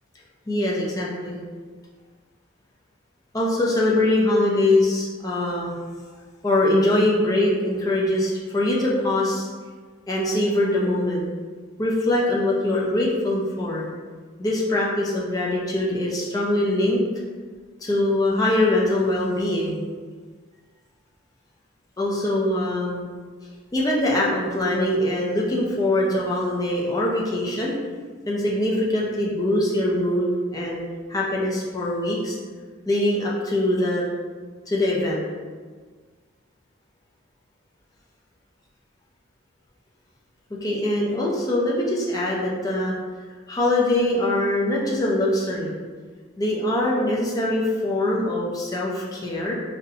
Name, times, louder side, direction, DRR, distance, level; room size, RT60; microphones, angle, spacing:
voice 1, 0.5-1.4 3.3-5.7 6.4-9.5 10.1-11.2 11.8-13.9 14.4-17.0 17.8-19.9 22.0-23.1 23.7-27.8 28.3-30.8 31.1-32.4 32.9-34.0 34.7-35.3 40.5-42.9 43.5-45.7 46.4-49.5, left 1 dB, 15° left, -4 dB, 0.4 m, -23 dB
3.8 x 2.1 x 2.7 m, 1.5 s
head